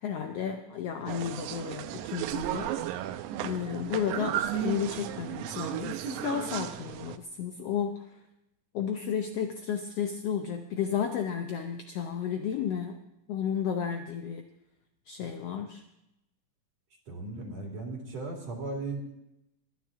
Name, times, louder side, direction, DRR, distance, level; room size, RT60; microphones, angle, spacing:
voice 1, 0.0-3.1 3.4-8.2 8.7-13.0 13.3-14.4 15.1-15.8, left 8 dB, 75° left, 5 dB, 1.5 m, -33 dB
sound 1, 1.1-7.2, right 12 dB, 80° right, 2.0 m, -34 dB
voice 2, 17.1-19.0, right 2 dB, 55° right, 0 dB, 3.1 m, -36 dB
22.5 x 9.7 x 3.6 m, 0.87 s
omnidirectional pair, 3.7 m